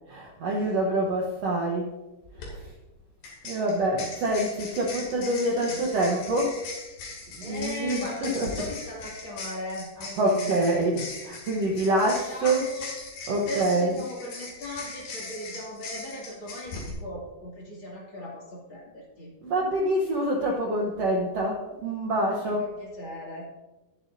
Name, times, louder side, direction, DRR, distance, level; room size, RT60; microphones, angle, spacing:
voice 1, 0.1-2.0 2.4-2.7 3.4-6.6 7.4-8.7 10.0-12.7 13.3-14.1 19.4-22.7, right 1 dB, 90° right, -1 dB, 1.4 m, -26 dB
sound 1, 2.2-2.5 3.2-16.9, left 3 dB, 85° left, 4.6 m, -40 dB
voice 2, 7.4-10.9 11.7-12.9 13.5-19.3 22.4-23.5, left 1 dB, 35° left, -4 dB, 2.6 m, -38 dB
21.5 x 7.6 x 2.7 m, 1.1 s
omnidirectional pair, 4.6 m